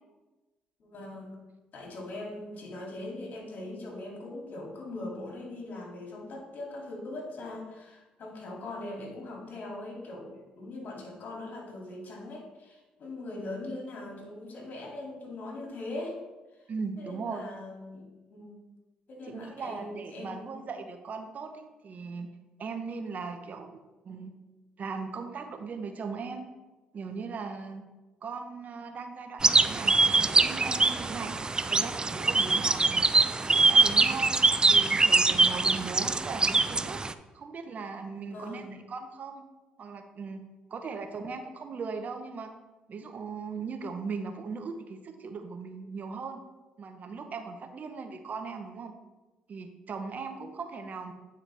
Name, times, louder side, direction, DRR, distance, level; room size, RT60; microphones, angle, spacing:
voice 1, 0.8-1.4 1.7-16.2 16.5-16.7 17.0-18.6 19.1-20.5 38.3-38.8, left 2 dB, 55° left, -2 dB, 2.5 m, -41 dB
voice 2, 16.7-17.5 19.3-22.3 22.6-24.3 24.8-26.5 26.9-27.8 28.2-31.3 31.7-33.1 33.5-34.4 34.7-37.0 37.3-39.4 39.8-40.4 40.7-42.5 42.9-46.4 46.8-48.9 49.5-51.1, right 5 dB, 50° right, 7 dB, 0.8 m, -38 dB
sound 1, 29.4-37.1, right 3 dB, 25° right, 0.4 m, -23 dB
9.0 x 4.7 x 3.4 m, 1.1 s
hypercardioid pair, 55°, 3 cm